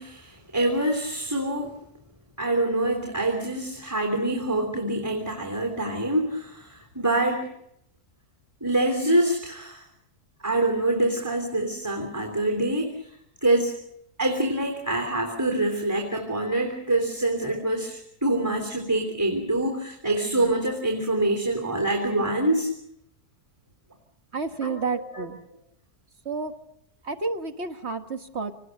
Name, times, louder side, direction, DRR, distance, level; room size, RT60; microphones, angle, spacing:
voice 1, 0.0-1.8 2.4-7.5 8.6-9.8 10.4-13.2 13.4-13.8 14.2-22.7 24.6-25.2, right 1 dB, 10° right, 2 dB, 3.3 m, -25 dB
voice 2, 24.3-25.4 26.3-26.5 27.0-28.5, right 4 dB, 45° right, 7 dB, 1.9 m, -30 dB
26.5 x 19.5 x 6.7 m, 0.78 s
omnidirectional pair, 1.7 m